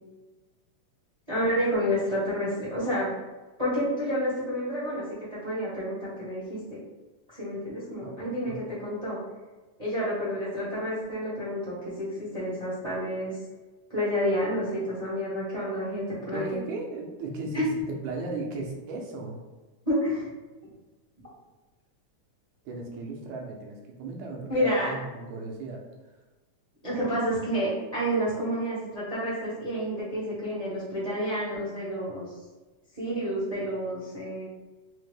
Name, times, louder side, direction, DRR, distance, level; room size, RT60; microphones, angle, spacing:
voice 1, 1.3-3.1 3.6-5.0 5.3-6.6 7.3-9.2 9.8-13.4 13.9-16.6 17.5-17.6 19.8-20.3 24.5-24.9 26.8-32.3 32.9-34.5, equal, 65° right, -9 dB, 0.3 m, -29 dB
voice 2, 8.0-8.6 16.3-19.4 22.7-26.1, right 2 dB, 85° right, 0 dB, 2.1 m, -36 dB
5.3 x 2.1 x 3.3 m, 1.2 s
omnidirectional pair, 3.3 m